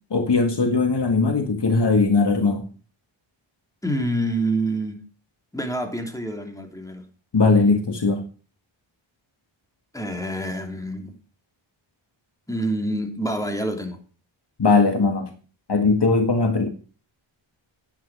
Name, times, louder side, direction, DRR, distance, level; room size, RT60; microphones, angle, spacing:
voice 1, 0.1-2.7 7.3-8.2 14.6-15.3 15.7-16.7, left 3 dB, 55° left, 1.9 m, -19 dB
voice 2, 3.8-5.0 5.5-7.1 9.9-11.1 12.5-14.0, right 1 dB, 5° left, 3.0 m, -27 dB
12.0 x 9.3 x 4.8 m
wide cardioid pair, 95°, 49 cm